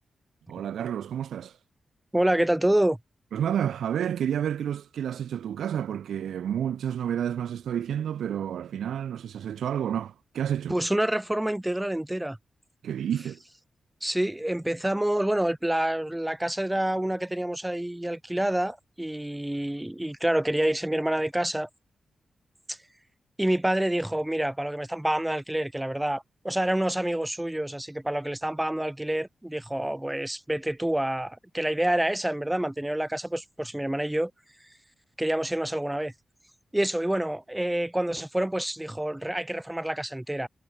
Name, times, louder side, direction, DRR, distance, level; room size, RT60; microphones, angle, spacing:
voice 1, 0.5-1.6 3.3-10.8 12.8-13.4, right 9 dB, 85° right, 0.4 m, -30 dB
voice 2, 2.1-3.0 10.7-12.4 14.0-21.7 22.7-22.8 23.4-34.3 35.2-36.1 36.7-40.5, right 1 dB, 10° right, 2.5 m, -27 dB
supercardioid pair, 50°, 0 cm